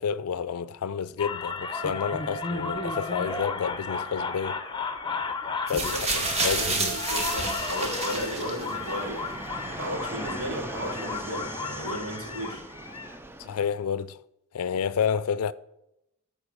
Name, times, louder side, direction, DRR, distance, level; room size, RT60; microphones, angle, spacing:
voice 1, 0.0-4.6 5.7-5.9 6.4-6.9 13.4-14.2 14.5-15.5, left 7 dB, 85° left, 0.4 m, -29 dB
sound 1, 1.2-13.2, left 4 dB, 20° left, 0.8 m, -34 dB
sound 2, 5.7-8.9 9.8-9.9, right 2 dB, 30° right, 1.6 m, -29 dB
voice 2, 5.8-12.6, equal, 85° right, 2.8 m, -35 dB
Fixed-wing aircraft airplane, 6.0-13.6, right 1 dB, 10° right, 0.5 m, -40 dB
13.5 x 4.6 x 6.3 m
head